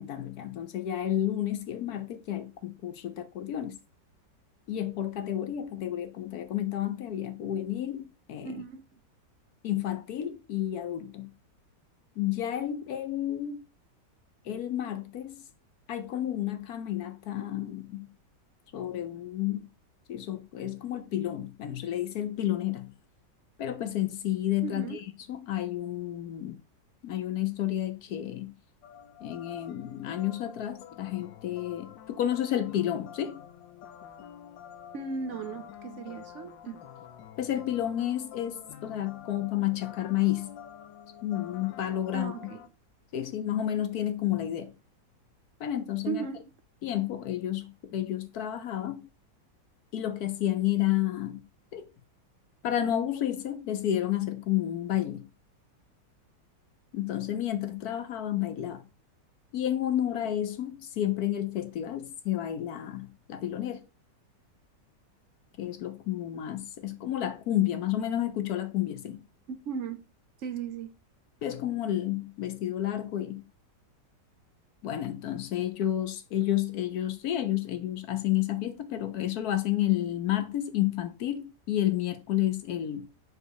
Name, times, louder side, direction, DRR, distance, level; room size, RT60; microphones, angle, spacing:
voice 1, 0.0-3.8 4.7-8.5 9.6-11.3 12.2-13.7 14.4-15.4 15.9-18.1 18.7-19.7 20.1-22.9 23.6-26.6 27.0-28.5 29.2-33.4 37.4-40.6 41.2-42.3 43.1-44.7 45.6-46.3 46.8-49.1 49.9-51.4 51.7-51.9 52.6-55.3 56.9-58.8 59.5-63.9 65.6-69.2 71.4-73.4 74.8-83.1, left 12 dB, 65° left, 1.1 m, -31 dB
voice 2, 8.4-8.8 24.6-25.0 34.9-36.8 42.1-42.6 46.1-46.5 69.7-70.0 70.4-70.9, right 6 dB, 60° right, 0.7 m, -36 dB
sound 1, 28.8-42.7, left 9 dB, 90° left, 1.4 m, -48 dB
4.8 x 4.3 x 4.7 m
omnidirectional pair, 1.9 m